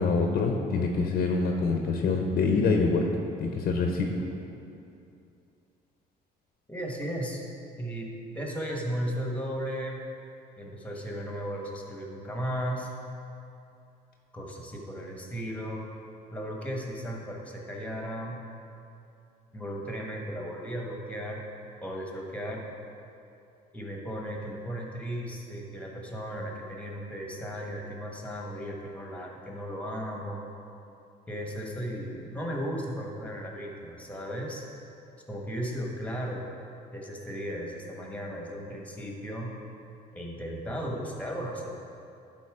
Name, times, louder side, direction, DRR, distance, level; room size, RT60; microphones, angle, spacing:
voice 1, 0.0-3.1 3.4-4.1, left 4 dB, 60° left, 2 dB, 0.8 m, -25 dB
voice 2, 6.7-7.4 7.8-10.1 10.6-12.9 14.3-15.8 16.3-18.4 19.5-21.5 21.8-22.6 23.7-30.4 31.3-34.6 35.3-36.4 36.9-39.6 40.1-41.7, equal, 10° left, 0 dB, 1.3 m, -35 dB
11.5 x 4.0 x 4.9 m, 2.6 s
cardioid pair, 110°, 17 cm